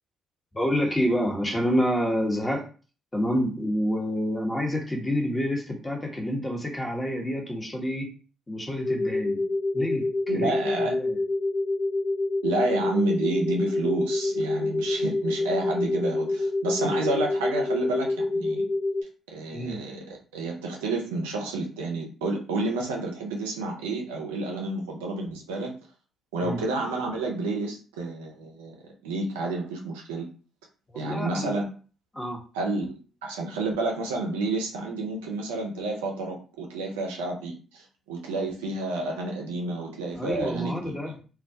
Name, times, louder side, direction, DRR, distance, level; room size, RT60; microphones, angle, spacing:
voice 1, 0.5-2.6 3.1-8.1 8.5-9.4 9.7-10.1 10.3-11.2 19.5-19.8 26.4-26.6 30.9-31.5 32.1-32.4 40.1-41.2, equal, 20° left, 0 dB, 0.9 m, -28 dB
sound 1, 8.8-19.0, left 2 dB, 35° left, 0.6 m, -27 dB
voice 2, 10.3-10.9 12.4-18.7 19.3-25.7 26.3-28.8 29.0-30.3 30.9-31.6 32.5-40.9, right 2 dB, 80° right, 0 dB, 0.4 m, -30 dB
2.2 x 2.1 x 2.6 m, 0.38 s
hypercardioid pair, 45°, 0 cm